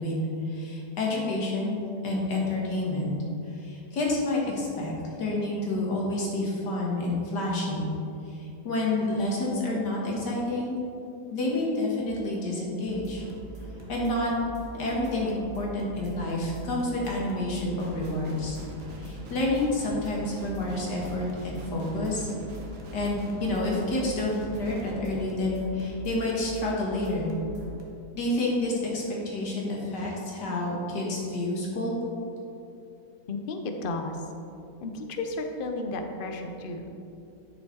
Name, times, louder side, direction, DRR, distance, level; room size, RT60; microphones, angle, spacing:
voice 1, 0.0-3.1 3.5-4.9 5.2-7.9 8.3-10.8 11.3-13.2 13.9-14.3 14.7-18.6 19.0-22.4 22.9-27.3 28.2-32.0, left 2 dB, 80° left, -3 dB, 2.3 m, -29 dB
sound 1, 12.9-27.8, right 1 dB, 20° right, 1.1 m, -43 dB
Guitar, 17.8-25.0, right 3 dB, 70° right, 1.5 m, -44 dB
voice 2, 33.3-34.2 34.8-36.9, left 2 dB, 50° left, 5 dB, 0.6 m, -33 dB
10.5 x 5.3 x 4.5 m, 2.7 s
omnidirectional pair, 1.8 m